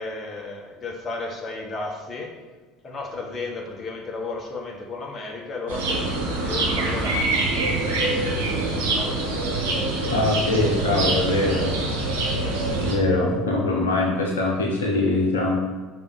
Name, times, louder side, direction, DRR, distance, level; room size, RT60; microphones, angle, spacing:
voice 1, 0.0-2.3 2.8-8.3 8.6-9.1, left 3 dB, 30° left, 1 dB, 1.2 m, -34 dB
sound 1, 5.7-12.9, right 2 dB, 65° right, 1.7 m, -25 dB
voice 2, 10.1-11.7 12.8-15.6, left 2 dB, 75° left, -1 dB, 0.8 m, -22 dB
5.4 x 4.0 x 4.9 m, 1.4 s
figure-of-eight pair, 65°, 0 cm